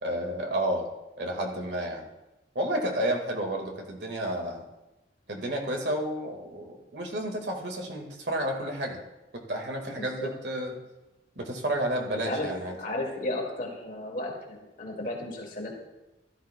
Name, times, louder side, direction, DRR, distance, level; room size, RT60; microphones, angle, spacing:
voice 1, 0.0-0.9 1.2-2.1 2.6-4.7 5.3-9.0 9.3-10.8 11.4-12.8, right 1 dB, 75° right, 2 dB, 1.8 m, -31 dB
voice 2, 10.0-10.3 12.1-12.5 12.8-15.7, left 1 dB, 50° left, -1 dB, 2.2 m, -34 dB
15.5 x 13.0 x 2.3 m, 0.99 s
head